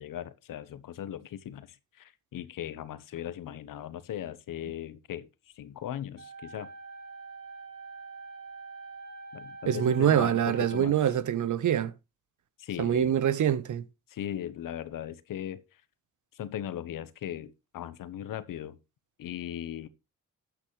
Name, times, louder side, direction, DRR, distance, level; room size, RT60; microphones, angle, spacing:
voice 1, 0.0-5.3 5.6-6.7 9.3-11.0 12.6-13.2 14.1-15.8 16.3-18.8 19.2-19.9, left 11 dB, 85° left, 1.1 m, -38 dB
sound 1, 6.2-11.1, right 4 dB, 50° right, 5.5 m, -45 dB
voice 2, 9.7-11.9 12.8-13.8, right 9 dB, 65° right, 1.0 m, -25 dB
12.0 x 8.4 x 3.2 m
cardioid pair, 75°, 32 cm